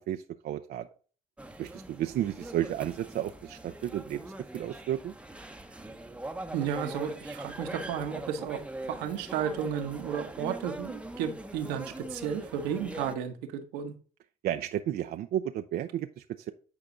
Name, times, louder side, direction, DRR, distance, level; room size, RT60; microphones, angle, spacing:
voice 1, 0.1-0.9 1.6-5.1 14.4-16.5, right 11 dB, 65° right, 7 dB, 0.5 m, -33 dB
sound 1, 1.4-13.2, right 1 dB, 5° right, 0.9 m, -42 dB
voice 2, 6.5-13.9, right 8 dB, 85° right, 5 dB, 1.2 m, -33 dB
8.9 x 4.8 x 3.9 m, 0.39 s
supercardioid pair, 65°, 17 cm